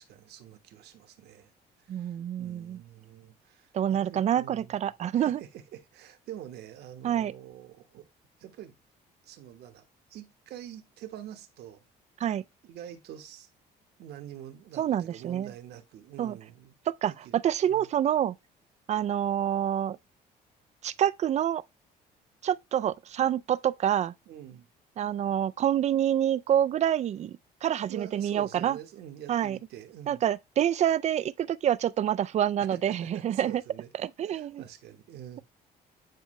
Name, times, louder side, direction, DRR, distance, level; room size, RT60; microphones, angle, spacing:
voice 1, 0.0-1.5 1.8-4.8 5.1-8.1 8.4-8.7 9.2-9.8 10.1-11.8 12.6-13.5 14.0-16.7 17.2-17.9 24.3-24.7 27.9-30.3 32.7-33.9 34.2-35.4, right 11 dB, 75° right, 1.2 m, -46 dB
voice 2, 1.9-2.8 3.7-5.4 7.0-7.3 12.2-12.4 14.8-15.5 16.2-16.4 17.0-18.3 18.9-20.0 20.8-21.6 22.4-24.1 25.0-27.3 27.6-28.8 29.3-29.6 30.1-33.6 34.0-34.6, right 10 dB, 40° right, 0.4 m, -27 dB
9.4 x 4.6 x 3.2 m
cardioid pair, 110°, 17 cm